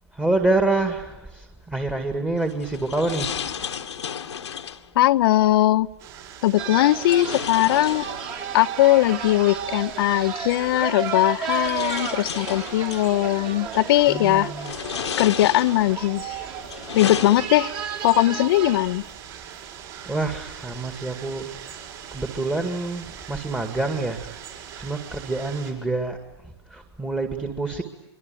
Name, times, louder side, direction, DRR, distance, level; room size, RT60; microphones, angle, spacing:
voice 1, 0.1-3.4 14.1-14.7 20.1-21.5 22.1-24.2 24.8-26.2 26.7-27.8, right 2 dB, 10° right, 5 dB, 2.1 m, -26 dB
sound 1, 2.4-4.9 6.9-8.6 9.9-10.0 11.0-13.1 13.7-14.1 14.5-16.0 16.5-17.9, left 8 dB, 80° left, 1.7 m, -33 dB
voice 2, 4.9-5.9 6.4-8.1 8.5-14.5 15.2-16.5 16.9-17.7 18.0-19.0, left 15 dB, 55° left, 15 dB, 0.9 m, -20 dB
sound 2, 6.0-25.7, right 9 dB, 50° right, 7.5 m, -42 dB
sound 3, 6.6-18.8, right 8 dB, 35° right, 3.3 m, -34 dB
25.0 x 24.5 x 9.3 m, 1.0 s
hypercardioid pair, 120°, 15 cm